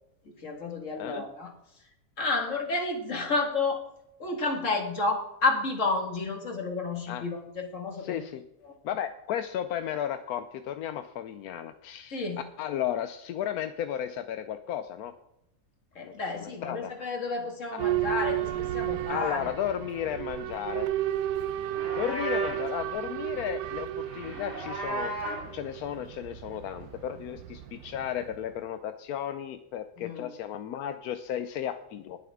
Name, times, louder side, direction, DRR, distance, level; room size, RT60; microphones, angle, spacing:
voice 1, 0.4-1.5 2.2-3.8 4.2-8.2 8.6-8.7 12.1-12.4 16.0-19.5 30.0-30.3, left 3 dB, 55° left, 2 dB, 2.5 m, -31 dB
voice 2, 8.0-8.4 8.8-12.2 12.6-15.1 16.0-16.1 16.4-16.9 17.7-17.8 19.1-20.9 21.9-25.1 25.5-32.2, left 10 dB, 85° left, 9 dB, 1.2 m, -34 dB
Boat Water vehicle / Alarm, 17.8-28.4, right 13 dB, 85° right, 1.1 m, -33 dB
Livestock farm animals working animals, 21.6-22.7 24.0-25.5, equal, 25° right, 5.6 m, -35 dB
20.0 x 7.1 x 3.6 m, 0.83 s
omnidirectional pair, 1.5 m